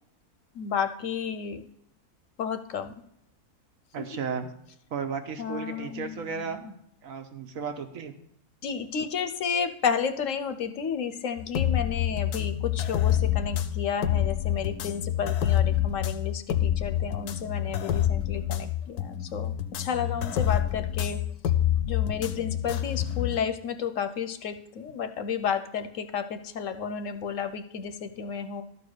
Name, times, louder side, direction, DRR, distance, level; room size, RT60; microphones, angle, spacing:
voice 1, 0.5-1.6 2.4-2.9 5.4-6.7 8.6-21.2 21.9-28.6, left 7 dB, 65° left, 9 dB, 0.9 m, -32 dB
voice 2, 3.9-4.5 4.9-6.6 7.0-8.1, right 6 dB, 65° right, 6 dB, 1.3 m, -34 dB
sound 1, 11.4-23.4, left 11 dB, 85° left, 1.2 m, -27 dB
12.5 x 4.7 x 6.6 m, 0.75 s
omnidirectional pair, 1.6 m